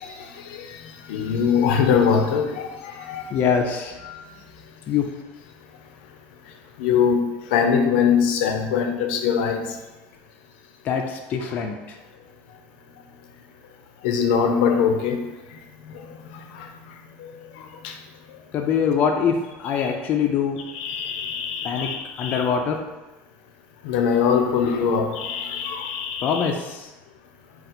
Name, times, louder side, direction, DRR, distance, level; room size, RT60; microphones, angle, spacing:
voice 1, 1.1-3.2 4.0-4.2 6.8-7.2 7.5-9.6 14.0-15.2 17.8-17.9 20.7-22.5 23.8-26.5, left 7 dB, 90° left, 5 dB, 0.5 m, -22 dB
voice 2, 3.3-3.9 4.9-5.1 10.9-11.8 18.5-20.6 21.6-21.9 22.2-22.8 26.2-26.8, left 7 dB, 30° left, 3 dB, 0.3 m, -23 dB
3.8 x 2.3 x 4.2 m, 1.1 s
cardioid pair, 165°, 5 cm